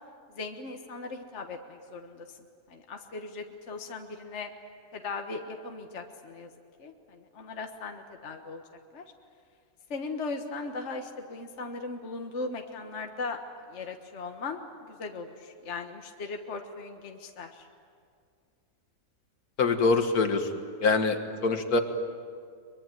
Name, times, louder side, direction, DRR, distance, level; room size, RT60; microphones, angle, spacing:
voice 1, 0.3-2.4 2.7-4.5 4.9-6.5 6.8-8.6 8.9-9.1 9.9-13.4 13.7-17.7, left 3 dB, 50° left, 4 dB, 1.7 m, -38 dB
voice 2, 19.6-20.5 20.8-21.8, left 4 dB, 75° left, 7 dB, 2.1 m, -24 dB
23.5 x 23.0 x 9.2 m, 2.2 s
omnidirectional pair, 1.6 m